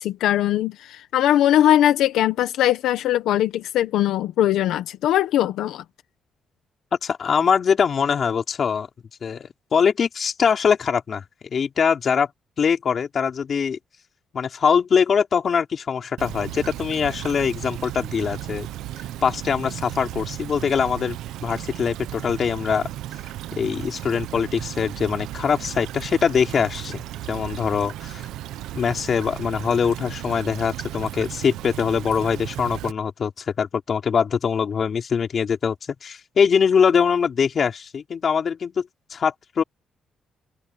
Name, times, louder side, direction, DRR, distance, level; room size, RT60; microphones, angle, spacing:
voice 1, 0.0-5.8, left 12 dB, 85° left, 1.1 m, -20 dB
voice 2, 6.9-8.9 9.2-12.3 12.6-13.8 14.3-18.7 19.2-22.9 23.6-27.0 27.3-28.2 28.7-39.6, left 6 dB, 50° left, 3.6 m, -22 dB
Stream / Trickle dribble, 16.2-32.9, right 13 dB, 90° right, 1.1 m, -35 dB
open air
cardioid pair, 90°, 0 cm